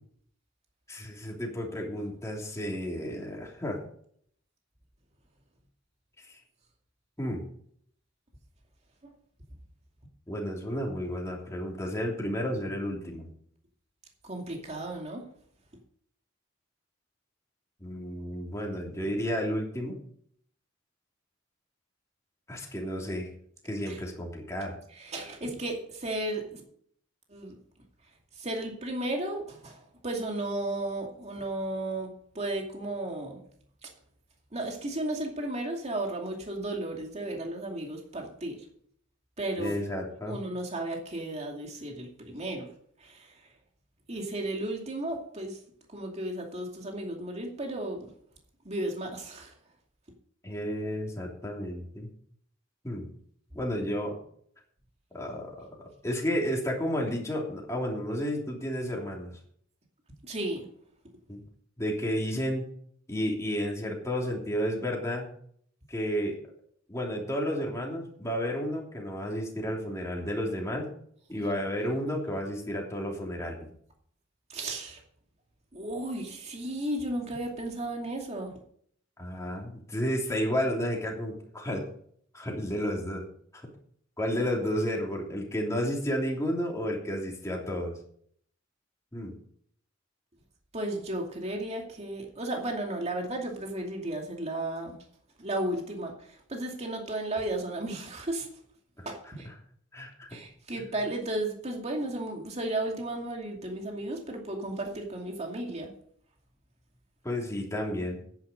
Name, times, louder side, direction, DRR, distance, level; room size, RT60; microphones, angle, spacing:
voice 1, 0.9-3.8 6.3-6.4 7.2-7.4 10.3-13.3 17.8-20.0 22.5-23.3 23.6-24.7 39.6-40.4 50.4-52.1 52.8-53.1 53.5-54.2 55.1-59.3 61.3-61.4 61.8-62.6 63.1-65.3 65.9-66.4 66.9-70.9 71.3-73.7 79.2-81.8 82.3-83.2 83.5-83.6 84.2-88.0 89.1-89.3 99.9-100.4 107.2-108.2, equal, 15° left, -1 dB, 3.1 m, -32 dB
voice 2, 14.2-15.2 23.9-24.0 24.9-26.6 27.3-27.6 28.4-33.4 33.8-33.9 34.5-38.6 39.4-39.8 40.3-42.7 43.0-43.4 44.1-45.6 45.9-48.0 48.6-49.5 60.2-60.7 74.5-75.0 75.7-78.5 90.7-95.0 95.4-98.5 99.0-99.5 100.3-105.9, right 1 dB, 35° right, 1 dB, 2.5 m, -34 dB
10.5 x 9.7 x 5.2 m, 0.62 s
head